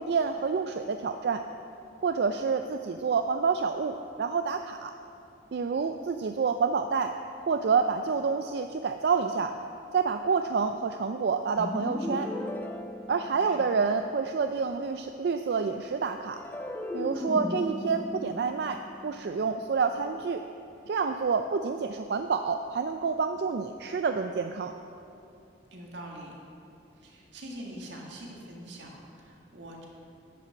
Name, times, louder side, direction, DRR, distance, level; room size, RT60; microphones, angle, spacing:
voice 1, 0.0-1.4 2.0-4.9 5.5-7.1 7.4-9.5 9.9-12.3 13.1-16.4 16.9-20.4 20.9-24.7, right 5 dB, 65° right, 7 dB, 0.3 m, -28 dB
sound 1, 11.6-14.0 16.4-19.7, left 1 dB, 10° left, 0.4 m, -36 dB
voice 2, 13.2-13.7 25.7-26.3 27.0-29.8, right 1 dB, 90° right, -1 dB, 1.8 m, -44 dB
10.5 x 5.9 x 6.9 m, 2.6 s
head